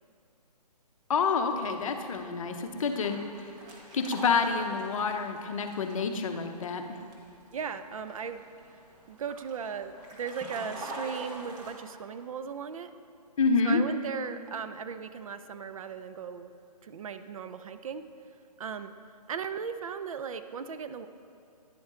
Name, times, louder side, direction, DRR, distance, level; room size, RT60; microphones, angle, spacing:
voice 1, 1.1-3.2 3.9-6.8 13.4-13.8, left 5 dB, 55° left, 6 dB, 0.8 m, -28 dB
sound 1, 1.2-11.7, right 1 dB, 20° right, 1.1 m, -46 dB
voice 2, 7.5-8.5 9.1-12.9 13.6-16.5 16.8-18.0 18.6-18.9 19.3-21.1, right 6 dB, 55° right, 10 dB, 0.5 m, -37 dB
10.0 x 7.1 x 3.7 m, 2.6 s
hypercardioid pair, 145°, 21 cm